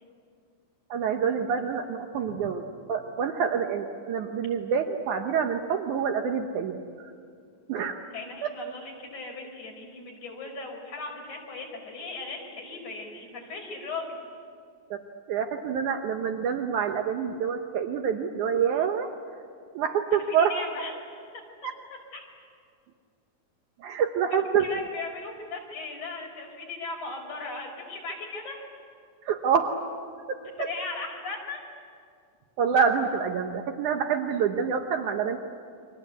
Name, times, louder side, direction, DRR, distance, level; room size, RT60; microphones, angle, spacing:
voice 1, 0.9-2.6 2.9-7.1 7.7-8.0 8.4-8.5 14.9-15.0 15.3-19.1 19.7-20.5 21.6-21.7 23.8-24.7 29.3-29.8 30.1-30.7 32.6-35.4, right 7 dB, 75° right, 4 dB, 2.4 m, -27 dB
voice 2, 8.1-14.2 20.1-20.9 21.3-21.4 22.1-22.2 24.3-28.6 30.6-31.6, left 3 dB, 65° left, 0 dB, 6.8 m, -37 dB
29.5 x 24.5 x 8.3 m, 2.2 s
omnidirectional pair, 3.7 m